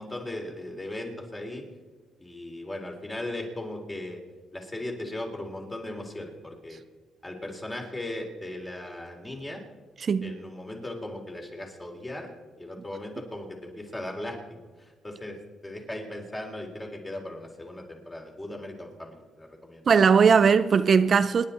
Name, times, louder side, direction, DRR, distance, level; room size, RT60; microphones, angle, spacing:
voice 1, 0.0-1.6 2.2-4.2 4.5-6.8 7.2-9.6 10.2-12.3 12.6-15.4 15.6-19.8, left 1 dB, 20° left, 3.4 m, -37 dB
voice 2, 10.0-10.3 19.9-21.4, right 6 dB, 45° right, 0.5 m, -19 dB
26.5 x 10.5 x 4.3 m
cardioid pair, 90°, 0 cm